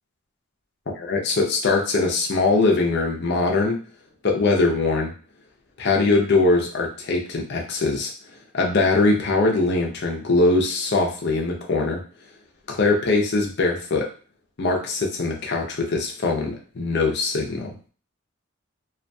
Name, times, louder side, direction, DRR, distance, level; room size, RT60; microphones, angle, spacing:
voice 1, 0.9-3.8 4.2-5.1 5.8-8.1 8.5-12.0 12.7-14.1 14.6-17.7, left 3 dB, 55° left, 0 dB, 0.6 m, -21 dB
2.4 x 2.2 x 2.6 m, 0.39 s
head